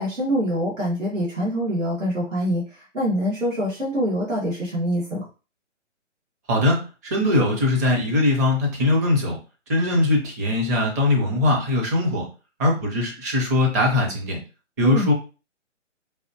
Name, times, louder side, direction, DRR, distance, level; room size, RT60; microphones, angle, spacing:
voice 1, 0.0-2.6 2.9-5.2 14.8-15.1, equal, 75° right, -5 dB, 1.9 m, -24 dB
voice 2, 6.5-9.4 9.7-12.2 12.6-14.4 14.8-15.1, left 2 dB, 15° right, 1 dB, 0.6 m, -21 dB
4.7 x 2.6 x 2.8 m, 0.33 s
figure-of-eight pair, 140°, 38 cm